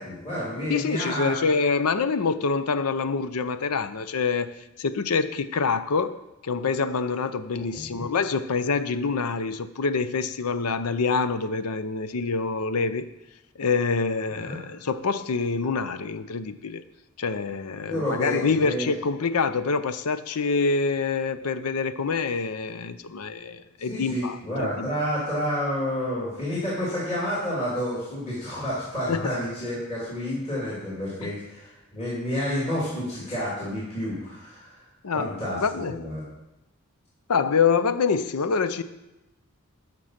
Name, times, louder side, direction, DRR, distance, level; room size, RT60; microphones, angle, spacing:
voice 1, 0.0-1.4 7.5-8.0 14.3-14.6 17.8-18.9 23.8-34.8 35.1-36.2, equal, 30° left, -7 dB, 3.0 m, -30 dB
voice 2, 0.7-4.5 4.8-6.2 6.4-13.1 13.6-16.8 17.2-24.9 29.1-29.4 31.2-31.3 35.0-36.0 37.3-38.8, left 4 dB, 80° left, 13 dB, 0.6 m, -26 dB
11.5 x 6.1 x 5.8 m, 0.95 s
head